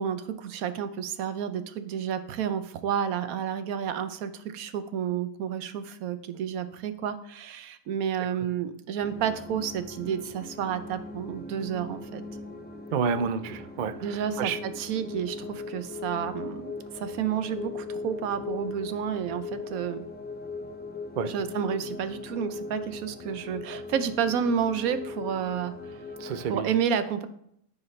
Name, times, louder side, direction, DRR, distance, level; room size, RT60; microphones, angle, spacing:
voice 1, 0.0-12.2 14.0-20.1 21.3-26.0 26.4-27.3, right 8 dB, 90° right, 11 dB, 1.1 m, -30 dB
sound 1, 9.0-26.6, left 3 dB, 10° left, 0.6 m, -39 dB
voice 2, 12.9-14.6 21.2-21.3 26.2-26.7, right 6 dB, 65° right, 11 dB, 0.4 m, -29 dB
13.5 x 4.9 x 3.2 m, 0.72 s
omnidirectional pair, 1.4 m